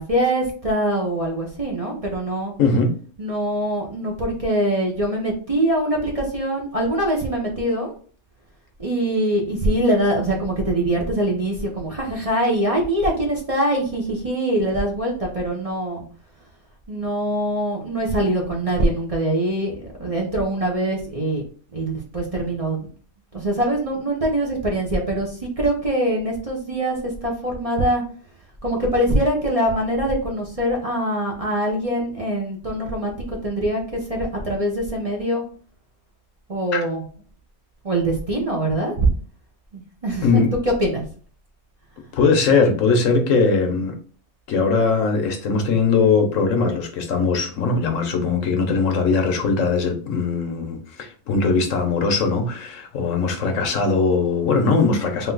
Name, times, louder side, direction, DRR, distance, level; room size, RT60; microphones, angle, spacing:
voice 1, 0.0-2.5 3.2-7.9 8.8-16.0 16.9-21.4 21.7-22.8 23.3-28.0 28.6-35.4 36.5-37.0 37.8-39.1 39.7-41.0, right 1 dB, 30° right, -1 dB, 0.9 m, -23 dB
voice 2, 2.6-2.9 36.7-36.8 40.2-40.5 42.1-43.9 44.5-55.3, left 4 dB, 70° left, 5 dB, 1.2 m, -20 dB
3.8 x 2.8 x 3.8 m, 0.43 s
omnidirectional pair, 1.4 m